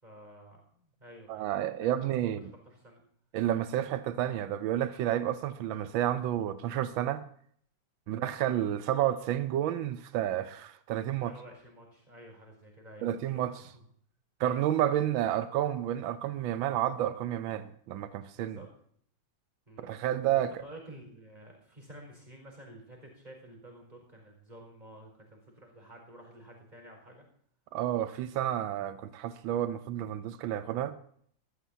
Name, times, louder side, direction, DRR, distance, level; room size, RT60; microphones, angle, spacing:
voice 1, 0.0-3.0 5.2-5.4 8.0-8.3 11.2-13.0 13.3-13.8 18.4-18.7 19.7-19.9 20.3-27.2, right 1 dB, 20° right, 5.0 m, -51 dB
voice 2, 1.3-2.4 3.3-7.2 8.1-11.3 13.0-13.5 14.4-18.6 19.8-20.5 27.7-30.9, right 11 dB, 90° right, 1.5 m, -30 dB
22.0 x 14.0 x 2.7 m
omnidirectional pair, 2.1 m